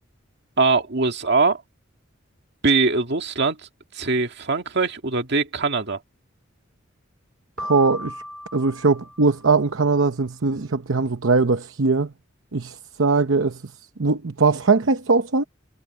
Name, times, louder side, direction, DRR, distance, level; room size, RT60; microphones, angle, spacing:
voice 1, 0.6-1.6 2.6-3.6 4.0-6.0, right 3 dB, 60° right, 2.0 m, -21 dB
Piano, 7.6-9.7, left 1 dB, ahead, 2.4 m, -37 dB
voice 2, 7.6-8.1 8.5-12.1 12.5-13.6 14.0-15.4, right 4 dB, 75° right, 0.9 m, -20 dB
head